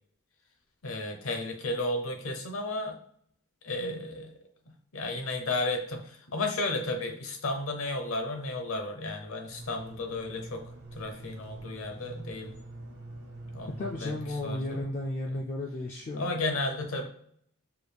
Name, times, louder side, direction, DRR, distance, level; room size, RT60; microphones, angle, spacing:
voice 1, 0.8-3.0 3.6-4.3 4.9-10.6 11.0-12.5 13.5-13.7 14.0-14.1 14.4-14.8 16.2-17.1, left 2 dB, 65° left, 4 dB, 0.7 m, -33 dB
sound 1, 9.5-14.8, right 1 dB, 70° right, 1.1 m, -44 dB
voice 2, 13.8-16.4, left 1 dB, 35° left, -1 dB, 0.3 m, -34 dB
4.7 x 2.3 x 3.3 m, 0.66 s
head